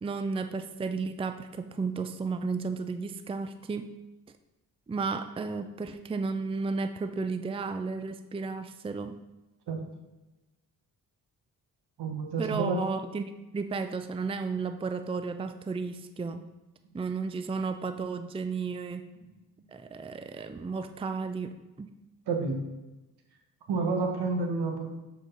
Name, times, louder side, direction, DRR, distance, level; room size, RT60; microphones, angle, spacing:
voice 1, 0.0-3.9 4.9-9.2 12.4-16.5 16.9-19.1 19.7-21.9, right 4 dB, 15° right, 9 dB, 0.4 m, -33 dB
voice 2, 12.0-12.8 22.3-22.6 23.7-24.9, right 4 dB, 75° right, 3 dB, 1.2 m, -29 dB
7.6 x 4.7 x 4.0 m, 1.1 s
cardioid pair, 65°, 40 cm